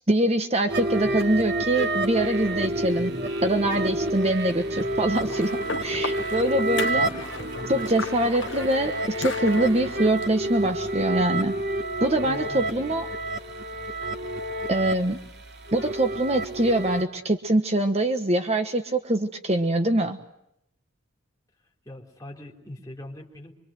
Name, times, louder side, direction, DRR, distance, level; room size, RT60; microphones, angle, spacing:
voice 1, 0.1-3.1 3.4-7.1 7.7-11.5 12.0-13.0 14.7-15.2 15.7-20.2, right 1 dB, 30° right, 7 dB, 1.3 m, -24 dB
sound 1, 0.7-17.0, right 1 dB, 55° right, 2.9 m, -29 dB
sound 2, 2.2-10.1, right 2 dB, 75° right, 4.7 m, -39 dB
sound 3, 5.1-10.3, left 4 dB, 60° left, 1.1 m, -36 dB
voice 2, 12.2-12.9 21.9-23.5, left 1 dB, 15° left, 1 dB, 3.9 m, -41 dB
25.5 x 25.0 x 7.9 m, 0.79 s
head